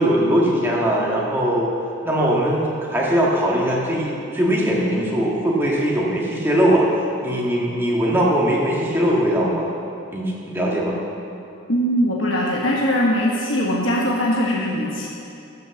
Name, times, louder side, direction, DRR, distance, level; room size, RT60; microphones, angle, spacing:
voice 1, 0.0-1.7 2.0-6.9 7.2-9.7 10.1-11.0, equal, 10° right, -4 dB, 1.6 m, -20 dB
voice 2, 11.7-15.1, equal, 70° left, -3 dB, 1.2 m, -21 dB
12.0 x 6.2 x 6.9 m, 2.7 s
head